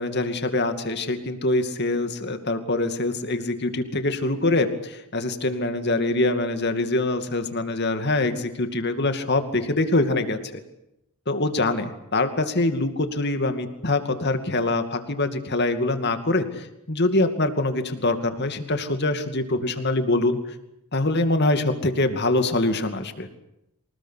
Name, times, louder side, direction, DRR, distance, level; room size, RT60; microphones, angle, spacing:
voice 1, 0.0-10.6 11.3-20.4 20.9-23.3, left 2 dB, 50° left, 8 dB, 2.4 m, -24 dB
25.0 x 20.0 x 8.3 m, 0.84 s
head